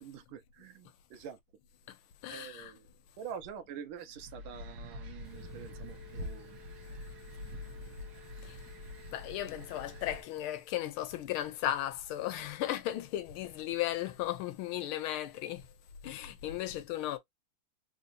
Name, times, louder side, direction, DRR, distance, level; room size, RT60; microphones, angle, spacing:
voice 1, 0.0-1.4 2.3-2.9 3.2-6.6 7.9-8.0, right 7 dB, 85° right, 1.6 m, -46 dB
voice 2, 2.2-2.7 8.4-8.6 9.1-15.7 16.0-17.2, left 13 dB, 85° left, 1.5 m, -36 dB
sound 1, 4.1-10.2, left 1 dB, 60° right, 1.3 m, -45 dB
Telephone, 5.2-10.5, left 17 dB, 70° left, 1.2 m, -56 dB
4.1 x 2.7 x 2.4 m
omnidirectional pair, 2.3 m